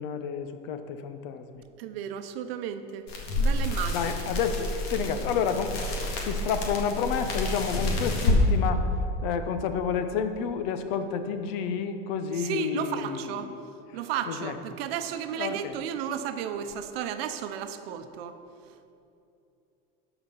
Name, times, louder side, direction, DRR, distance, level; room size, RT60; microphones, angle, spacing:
voice 1, 0.0-1.6 3.9-8.9 9.2-13.6 14.3-14.5 15.4-15.8, left 6 dB, 70° left, 9 dB, 0.9 m, -30 dB
voice 2, 1.8-3.1 3.4-4.1 12.3-13.5 13.9-18.4, right 9 dB, 80° right, 9 dB, 0.8 m, -33 dB
sound 1, 3.1-8.4, left 1 dB, 90° left, 1.9 m, -29 dB
12.5 x 5.1 x 5.7 m, 2.7 s
supercardioid pair, 125°, 29 cm